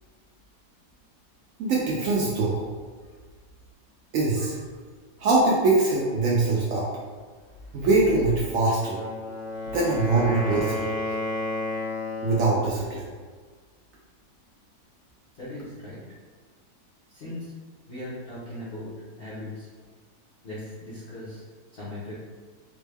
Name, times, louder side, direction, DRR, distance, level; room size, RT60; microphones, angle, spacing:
voice 1, 1.6-2.7 4.1-4.6 5.2-6.9 7.7-9.0 9.7-10.9 12.2-13.1, right 3 dB, 85° right, -4 dB, 0.7 m, -23 dB
Wind instrument woodwind instrument, 8.8-12.6, left 2 dB, 80° left, 1.6 m, -31 dB
voice 2, 15.4-16.0 17.1-17.5 17.9-18.9 19.2-19.7 20.4-21.4 21.7-22.1, left 1 dB, 55° left, -10 dB, 0.7 m, -38 dB
3.6 x 2.1 x 3.3 m, 1.5 s
omnidirectional pair, 2.0 m